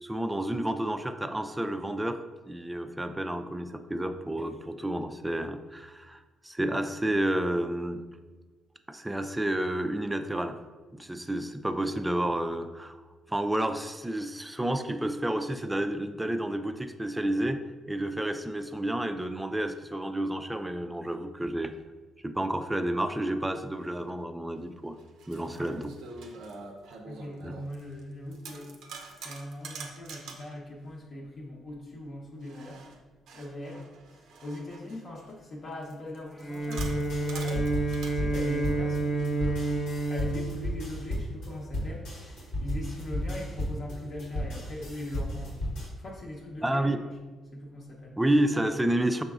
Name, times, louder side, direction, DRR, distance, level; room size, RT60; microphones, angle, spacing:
voice 1, 0.0-2.2 2.5-8.0 8.9-10.6 10.9-13.0 13.3-17.6 17.9-21.7 22.2-25.0 25.3-25.9 27.4-27.5 46.6-47.0 48.2-49.2, right 1 dB, 10° right, 9 dB, 0.3 m, -30 dB
sound 1, 24.1-24.2 24.9-28.0 28.3-30.6 32.4-35.3 35.8-38.2 39.2-40.4, right 4 dB, 80° right, 0.5 m, -46 dB
voice 2, 27.1-28.7 29.1-32.8 33.3-39.6 40.1-47.2 47.5-48.2, left 1 dB, 55° left, -3 dB, 0.8 m, -40 dB
Bowed string instrument, 36.3-41.5, right 2 dB, 10° left, 0.8 m, -30 dB
sound 2, 36.8-45.9, left 1 dB, 85° left, 1.2 m, -34 dB
5.4 x 3.8 x 2.4 m, 1.3 s
cardioid pair, 90°, 0 cm